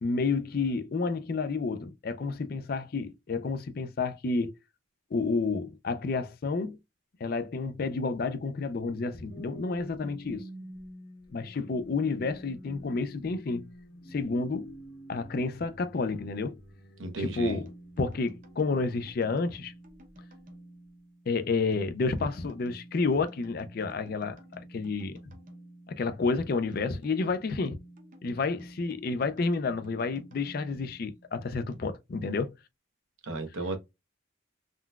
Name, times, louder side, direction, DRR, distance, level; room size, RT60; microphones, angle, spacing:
voice 1, 0.0-4.5 5.1-6.8 7.2-10.5 11.3-13.6 14.1-14.8 15.1-16.6 17.2-17.7 18.0-19.7 21.3-24.4 24.7-25.2 25.9-27.8 28.2-32.5, left 4 dB, 45° left, 0.4 m, -30 dB
sound 1, 9.1-19.3 19.9-20.2, equal, 80° left, 1.5 m, -49 dB
voice 2, 17.0-17.6 33.2-33.8, right 3 dB, 75° right, 0.8 m, -33 dB
sound 2, 17.4-31.8, right 1 dB, 40° right, 0.7 m, -51 dB
3.7 x 2.2 x 2.3 m
head